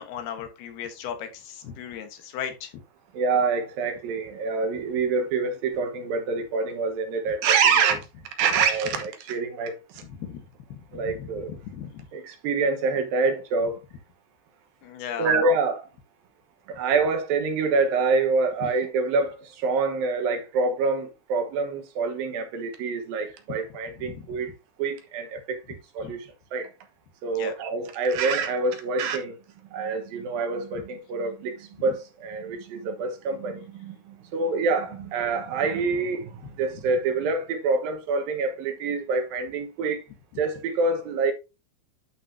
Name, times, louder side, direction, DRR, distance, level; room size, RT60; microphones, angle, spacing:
voice 1, 0.0-2.7 10.0-12.1 14.8-15.3 18.6-18.7 23.5-23.6 24.0-24.4 26.0-26.1 27.3-27.5 36.4-36.8, left 8 dB, 85° left, 3.3 m, -37 dB
voice 2, 3.1-8.0 8.4-10.0 10.9-11.5 12.1-13.8 15.2-15.9 16.7-24.5 24.8-26.3 26.5-26.7 27.2-29.4 29.7-40.0 40.4-41.3, right 4 dB, 75° right, 2.9 m, -26 dB
11.5 x 5.5 x 2.7 m
omnidirectional pair, 4.4 m